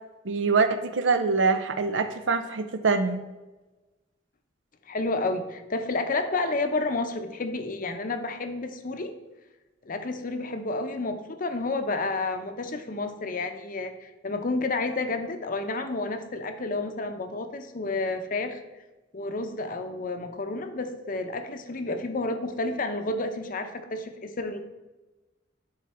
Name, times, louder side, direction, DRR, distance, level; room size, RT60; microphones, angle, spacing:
voice 1, 0.2-3.2, right 4 dB, 80° right, 9 dB, 0.6 m, -24 dB
voice 2, 4.9-9.2 9.9-18.6 19.1-24.6, left 2 dB, 50° left, 7 dB, 0.7 m, -30 dB
10.5 x 4.0 x 4.3 m, 1.1 s
head